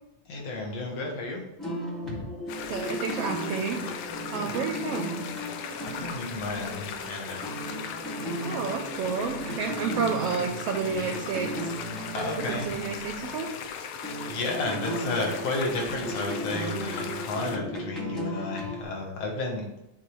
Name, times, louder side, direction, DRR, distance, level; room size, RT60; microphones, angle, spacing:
voice 1, 0.3-1.4 2.0-2.3 4.3-4.5 5.8-7.4 12.1-12.7 14.2-19.7, left 2 dB, 65° left, -1 dB, 2.5 m, -32 dB
sound 1, 1.6-13.6 14.0-18.8, right 1 dB, ahead, 0.7 m, -36 dB
sound 2, 2.5-17.6, left 7 dB, 80° left, 2.1 m, -38 dB
voice 2, 2.7-3.8 4.3-5.1 8.4-11.7 12.2-13.5, right 5 dB, 75° right, 3 dB, 1.5 m, -30 dB
9.4 x 3.5 x 4.6 m, 0.89 s
omnidirectional pair, 3.4 m